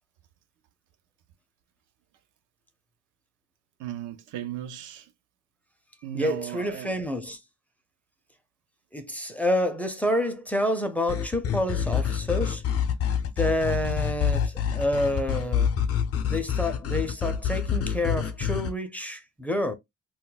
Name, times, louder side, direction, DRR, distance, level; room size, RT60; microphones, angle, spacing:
voice 1, 3.8-5.1 6.0-6.9, right 10 dB, 85° right, 0.6 m, -36 dB
voice 2, 6.1-7.4 8.9-12.6 13.4-15.7 16.3-19.7, left 1 dB, 5° left, 0.5 m, -28 dB
sound 1, 11.1-18.7, left 8 dB, 50° left, 0.6 m, -27 dB
2.3 x 2.2 x 3.9 m
cardioid pair, 90°, 30 cm